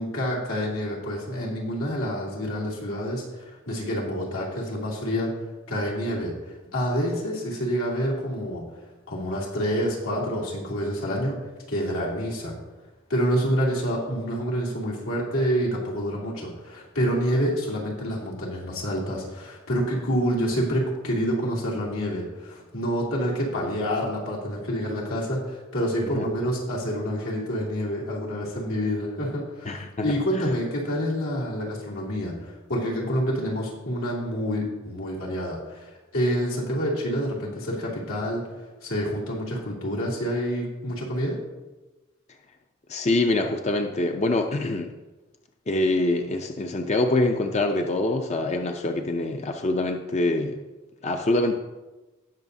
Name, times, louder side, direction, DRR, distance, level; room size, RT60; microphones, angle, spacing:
voice 1, 0.0-5.3 5.7-6.3 6.7-8.6 9.1-11.4 11.7-12.5 13.1-38.4 38.8-41.4, equal, 85° left, -4 dB, 2.8 m, -27 dB
voice 2, 29.7-30.1 30.4-30.5 42.9-44.9 45.7-50.6 51.0-51.6, left 2 dB, 35° left, 5 dB, 0.5 m, -25 dB
18.0 x 6.4 x 2.7 m, 1.1 s
head